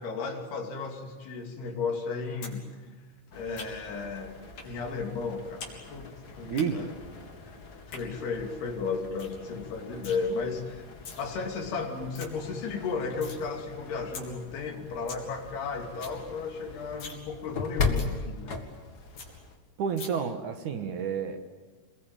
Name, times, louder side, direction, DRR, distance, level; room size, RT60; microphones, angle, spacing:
voice 1, 0.0-2.7 3.3-4.4 4.6-6.9 7.4-7.6 7.9-10.9 11.2-18.6, left 4 dB, 85° left, 3 dB, 4.8 m, -34 dB
sound 1, 2.4-2.6 2.9-4.0 4.6-4.7 5.1-5.8 6.0-6.6 7.7-8.0 8.5-8.6 8.9-9.0 9.2-9.4 9.7-10.2 10.8-11.2 11.7-11.8 11.9-12.3 12.7-13.4 13.8-13.9 14.1-14.3 14.6-14.7 14.9-15.2 15.6-15.7 15.9-16.2 16.5-16.6 16.9-17.2 17.5-17.6 18.0-18.1 18.5-18.6 18.8-18.9 19.2-19.3 20.0-20.1, left 4 dB, 55° left, 4.9 m, -42 dB
sound 2, 3.3-19.6, left 4 dB, 35° left, 1.8 m, -39 dB
voice 2, 6.5-6.8 19.8-21.4, right 7 dB, 60° right, 7 dB, 2.5 m, -30 dB
27.5 x 21.5 x 9.2 m, 1.3 s
omnidirectional pair, 4.5 m